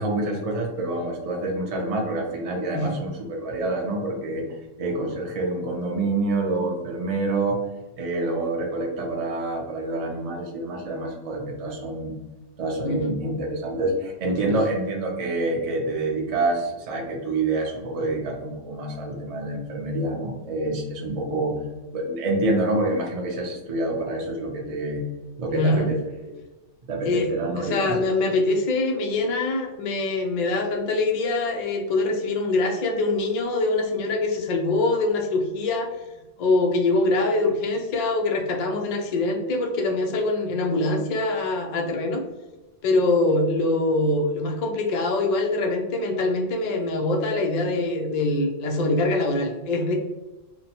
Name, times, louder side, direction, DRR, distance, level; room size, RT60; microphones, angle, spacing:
voice 1, 0.0-4.4 4.8-7.6 8.0-12.2 12.6-21.6 21.9-25.1 25.4-26.3 26.9-28.0, right 2 dB, 45° right, 0 dB, 0.4 m, -27 dB
voice 2, 12.8-13.2 25.5-25.9 27.0-27.3 27.6-35.9 36.4-42.2 42.8-49.9, left 2 dB, 75° left, 2 dB, 0.3 m, -24 dB
2.9 x 2.1 x 2.8 m, 1.1 s
omnidirectional pair, 1.3 m